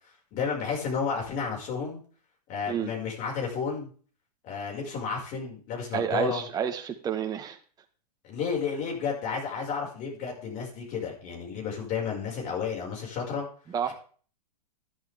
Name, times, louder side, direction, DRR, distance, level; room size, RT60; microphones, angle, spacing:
voice 1, 0.3-2.0 2.5-3.9 4.4-6.4 8.2-13.5, left 6 dB, 35° left, -1 dB, 5.8 m, -32 dB
voice 2, 5.9-7.6 13.7-13.9, right 8 dB, 20° right, 5 dB, 1.4 m, -29 dB
13.0 x 11.0 x 3.6 m, 0.43 s
hypercardioid pair, 140°, 21 cm